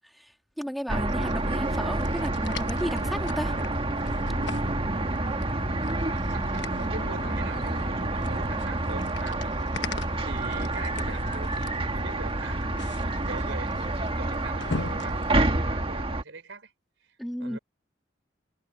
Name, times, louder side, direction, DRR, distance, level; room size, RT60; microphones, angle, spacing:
voice 1, 0.6-3.5 4.0-4.1 17.2-17.6, equal, ahead, 2.8 m, -33 dB
sound 1, 0.9-16.2, right 2 dB, 30° right, 1.6 m, -28 dB
sound 2, 1.1-15.3, left 3 dB, 65° left, 1.2 m, -41 dB
voice 2, 6.1-9.5 10.2-13.8 14.2-16.7 17.0-17.6, right 3 dB, 80° right, 3.8 m, -42 dB
head